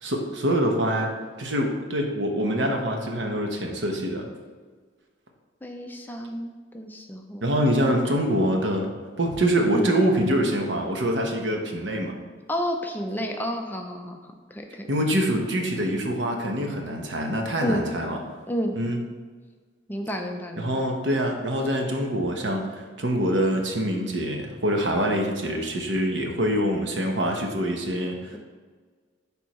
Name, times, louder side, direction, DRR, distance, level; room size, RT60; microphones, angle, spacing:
voice 1, 0.0-1.1 1.4-4.3 7.4-8.9 9.2-12.1 14.9-18.2 18.7-19.0 20.6-28.4, equal, 70° right, 2 dB, 0.9 m, -25 dB
voice 2, 5.6-7.5 9.7-9.9 12.5-14.2 14.5-14.9 17.6-17.9 18.5-18.8 19.9-20.7, equal, 10° left, 3 dB, 0.4 m, -30 dB
10.5 x 3.6 x 3.0 m, 1.5 s
head